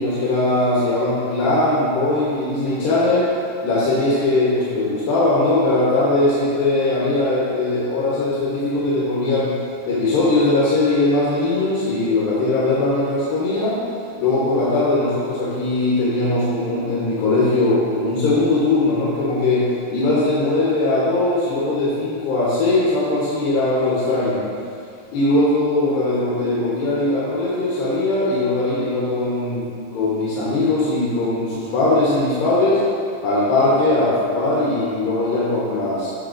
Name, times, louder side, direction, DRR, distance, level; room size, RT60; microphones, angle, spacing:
voice 1, 0.0-3.3 3.6-9.5 9.9-13.8 14.2-19.7 19.9-24.5 25.1-32.8 33.2-36.1, left 2 dB, 85° left, -8 dB, 3.0 m, -20 dB
15.0 x 5.5 x 2.6 m, 2.4 s
omnidirectional pair, 3.9 m